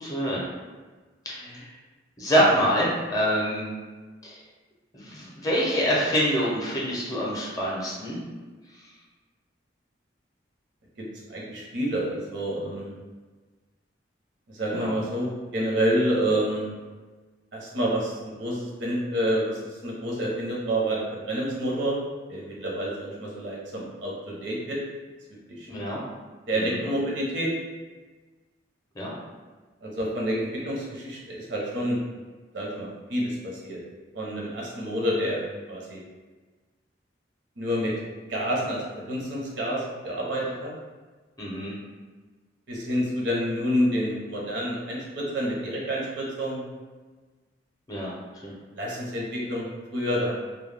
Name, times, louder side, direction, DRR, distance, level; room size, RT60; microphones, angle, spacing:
voice 1, 0.0-0.4 1.3-1.7 2.2-3.7 4.2-4.4 4.9-8.2 14.7-14.9 25.7-26.0 26.5-26.8 29.0-29.1 41.4-41.7 47.9-48.1 48.4-48.5, equal, 20° left, -5 dB, 0.5 m, -26 dB
voice 2, 11.0-13.0 14.5-16.7 17.5-22.0 22.3-24.8 25.6-25.7 26.5-27.5 29.8-32.0 32.5-33.8 34.1-35.4 35.7-36.0 37.6-37.9 38.3-40.7 42.7-46.6 48.7-50.4, equal, 75° right, -3 dB, 0.7 m, -28 dB
2.2 x 2.1 x 3.2 m, 1.3 s
head